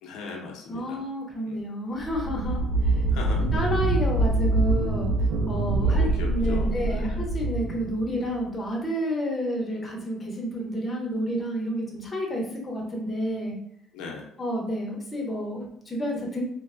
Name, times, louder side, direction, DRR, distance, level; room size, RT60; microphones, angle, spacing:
voice 1, 0.0-1.0 1.5-1.6 3.1-3.4 5.8-7.3 13.9-14.3, left 4 dB, 85° left, 0 dB, 0.5 m, -38 dB
voice 2, 0.7-2.6 2.9-3.0 3.5-5.1 5.5-13.6 14.4-16.4, equal, 20° left, -1 dB, 0.7 m, -30 dB
sound 1, 2.0-8.4, right 2 dB, 80° right, 0.5 m, -25 dB
3.0 x 2.0 x 2.4 m, 0.70 s
cardioid pair, 125°, 0 cm